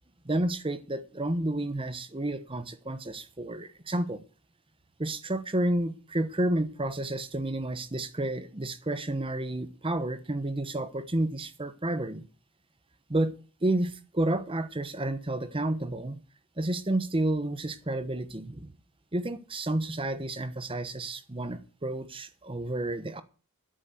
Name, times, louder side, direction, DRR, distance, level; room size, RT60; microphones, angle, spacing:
voice 1, 0.2-4.2 5.0-12.2 13.1-13.3 13.6-16.2 16.6-18.7 19.1-23.2, right 1 dB, 25° right, 1.1 m, -30 dB
10.5 x 8.7 x 7.8 m
head